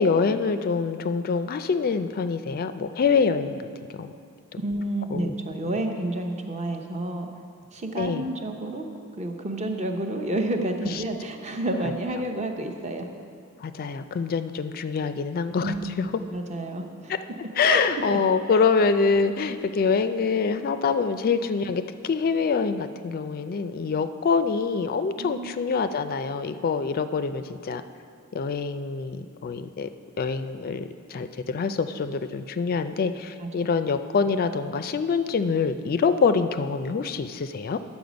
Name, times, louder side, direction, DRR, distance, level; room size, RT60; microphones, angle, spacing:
voice 1, 0.0-3.6 3.9-4.1 5.1-5.3 7.9-8.3 10.8-11.0 13.6-16.1 17.1-17.2 17.6-27.8 28.3-29.9 30.2-37.8, left 5 dB, 45° left, 10 dB, 0.3 m, -25 dB
voice 2, 4.6-7.3 7.7-8.9 9.2-13.1 15.6-17.1 17.6-17.8 18.1-18.2 18.5-18.6 25.2-25.6 33.4-33.8, right 1 dB, 30° right, 4 dB, 0.7 m, -30 dB
9.5 x 7.1 x 5.1 m, 2.5 s
head